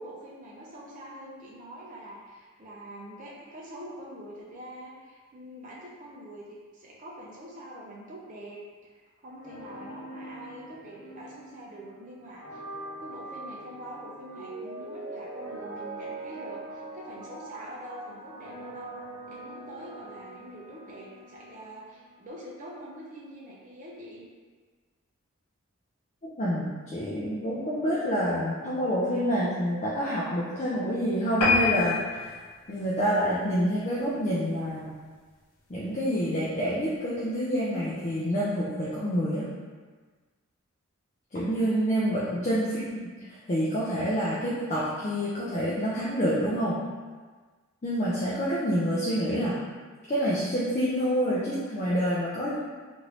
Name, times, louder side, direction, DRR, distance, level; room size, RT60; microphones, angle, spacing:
voice 1, 0.0-12.6 13.0-19.0 19.3-24.3 41.7-42.0, right 1 dB, 35° right, -5 dB, 0.5 m, -44 dB
sound 1, 9.3-22.2, right 1 dB, 55° left, 0.9 m, -46 dB
Mallet percussion, 14.3-19.8 20.2-20.3, right 3 dB, 85° right, 0.8 m, -42 dB
voice 2, 26.2-32.4 32.7-34.9 35.7-39.5 41.3-42.8 43.3-46.8 47.8-49.6 50.1-52.6, equal, 30° left, -8 dB, 0.4 m, -27 dB
sound 2, 31.4-34.2 34.6-34.8 35.3-35.4 35.7-35.8 36.0-36.1, left 4 dB, 85° left, 0.6 m, -28 dB
3.0 x 2.5 x 3.0 m, 1.4 s
head